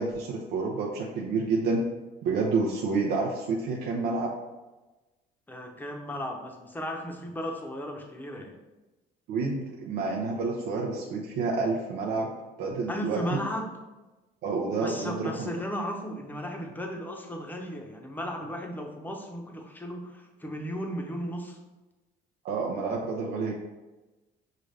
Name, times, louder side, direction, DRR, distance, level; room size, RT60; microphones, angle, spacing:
voice 1, 0.0-1.9 2.2-4.3 9.3-12.3 12.6-13.4 14.4-15.3 22.4-23.5, right 4 dB, 75° right, -2 dB, 0.6 m, -29 dB
voice 2, 5.5-8.6 12.9-13.7 14.8-21.6, equal, 10° left, 2 dB, 0.8 m, -35 dB
6.6 x 2.4 x 3.2 m, 1.1 s
cardioid pair, 110°, 17 cm